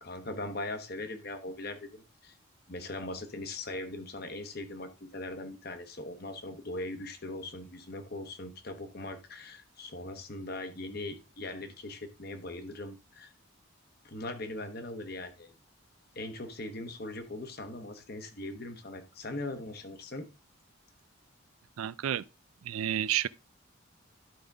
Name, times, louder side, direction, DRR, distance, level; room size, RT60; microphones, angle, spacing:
voice 1, 0.0-2.4 2.7-13.3 14.0-15.5 16.1-20.3, left 2 dB, 45° left, 1.0 m, -40 dB
voice 2, 21.8-22.2 22.6-23.3, right 11 dB, 80° right, 0.4 m, -30 dB
11.5 x 5.2 x 3.5 m
head